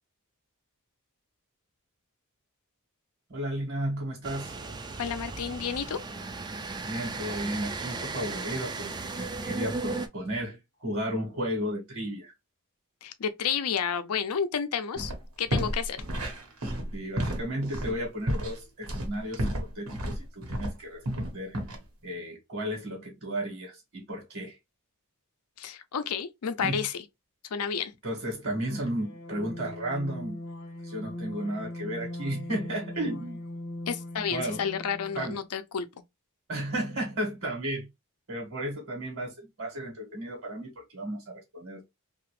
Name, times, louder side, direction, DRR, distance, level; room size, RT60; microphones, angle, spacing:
voice 1, 3.3-4.6 6.8-12.3 16.9-21.6 22.0-24.6 26.6-26.8 28.0-30.4 30.8-33.4 34.3-34.6 35.1-35.4 36.5-37.9 38.3-41.9, right 1 dB, 55° right, 1.3 m, -34 dB
sound 1, 4.2-10.1, right 3 dB, 20° right, 0.3 m, -36 dB
voice 2, 5.0-6.0 13.0-15.1 15.4-16.0 25.6-27.0 27.5-27.9 33.9-35.9, left 7 dB, 85° left, 0.5 m, -31 dB
sound 2, 14.9-15.2 15.5-20.7 21.1-21.8, equal, 80° right, 1.2 m, -31 dB
sound 3, 28.6-35.4, left 1 dB, 55° left, 0.8 m, -40 dB
2.8 x 2.5 x 3.0 m
head